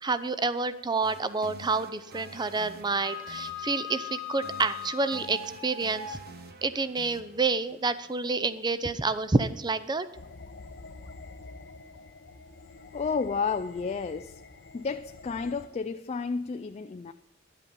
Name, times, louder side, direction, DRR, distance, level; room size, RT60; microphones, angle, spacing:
voice 1, 0.0-6.2 6.6-10.1, right 3 dB, 20° right, 0.6 m, -28 dB
sound 1, 1.0-8.9, right 2 dB, 50° right, 1.0 m, -50 dB
Wind instrument woodwind instrument, 2.1-6.2, left 6 dB, 70° right, 3.1 m, -40 dB
sound 2, 10.1-15.7, left 3 dB, 55° left, 0.7 m, -47 dB
voice 2, 12.9-14.4 14.7-17.1, left 5 dB, 30° left, 0.3 m, -31 dB
11.5 x 8.3 x 5.3 m
head